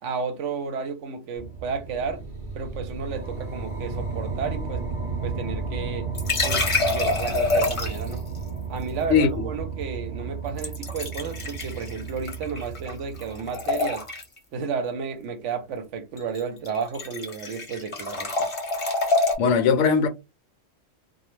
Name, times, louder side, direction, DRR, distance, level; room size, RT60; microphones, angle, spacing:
voice 1, 0.0-2.2 2.5-4.8 5.2-6.1 6.4-8.2 8.7-14.1 14.5-18.5, right 5 dB, 70° right, 0.9 m, -32 dB
sound 1, 1.4-13.9, right 4 dB, 35° right, 0.6 m, -33 dB
sound 2, 6.1-8.2 10.6-12.9 13.2-14.4 16.2-16.4 16.7-19.4, left 3 dB, 30° left, 0.6 m, -26 dB
voice 2, 9.1-9.5 19.4-20.1, left 6 dB, 70° left, 0.9 m, -20 dB
2.3 x 2.0 x 3.0 m
omnidirectional pair, 1.4 m